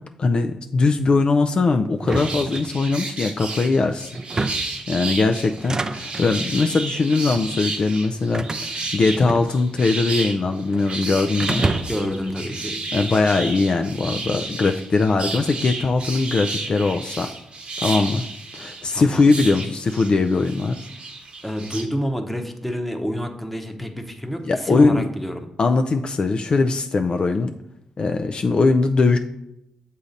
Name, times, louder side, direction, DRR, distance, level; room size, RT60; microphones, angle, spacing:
voice 1, 0.2-4.1 4.9-11.6 12.9-17.3 17.8-18.2 18.5-20.9 24.4-25.1 25.6-27.5 28.0-29.2, left 3 dB, 45° left, 5 dB, 0.4 m, -20 dB
sound 1, 2.0-3.1 4.1-4.8 5.5-6.3 7.1-7.5 8.3-9.9 10.1-10.9 11.4-12.2, right 3 dB, 30° right, 0.4 m, -28 dB
sound 2, 2.1-21.8, right 3 dB, 50° right, 1.1 m, -32 dB
voice 2, 11.9-12.8 18.9-19.3 21.4-25.5, equal, 5° left, 5 dB, 0.9 m, -28 dB
7.0 x 2.8 x 5.1 m, 0.83 s
supercardioid pair, 55°, 2 cm